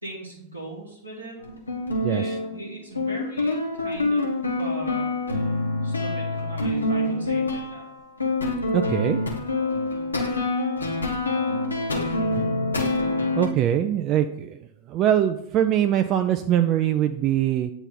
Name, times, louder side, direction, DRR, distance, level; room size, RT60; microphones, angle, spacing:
voice 1, 0.0-1.4 2.1-4.3 4.6-5.1 5.8-7.8, equal, 85° right, -5 dB, 1.0 m, -39 dB
sound 1, 1.4-13.5, left 2 dB, 80° left, 0.9 m, -26 dB
voice 2, 8.7-9.2 13.4-14.6 14.9-17.7, right 11 dB, 35° right, 8 dB, 0.3 m, -22 dB
8.8 x 3.0 x 3.8 m, 0.75 s
figure-of-eight pair, 90°, 0 cm